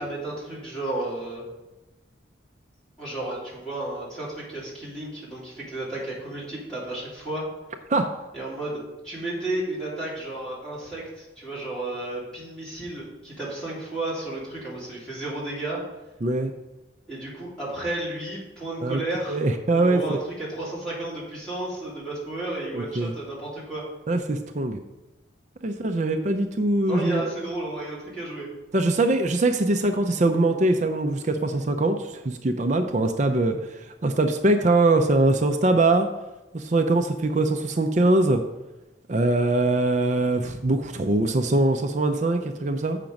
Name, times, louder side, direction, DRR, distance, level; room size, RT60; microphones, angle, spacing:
voice 1, 0.0-1.4 3.0-7.5 8.3-15.8 17.1-19.4 19.7-23.8 26.8-28.5, right 2 dB, 5° left, -9 dB, 2.9 m, -32 dB
voice 2, 16.2-16.5 18.8-19.0 19.3-20.2 22.7-23.1 24.1-24.8 25.6-27.2 28.7-33.6 34.0-36.1 36.5-38.4 39.1-43.0, right 2 dB, 40° right, 6 dB, 0.5 m, -22 dB
7.5 x 5.8 x 5.2 m, 1.0 s
head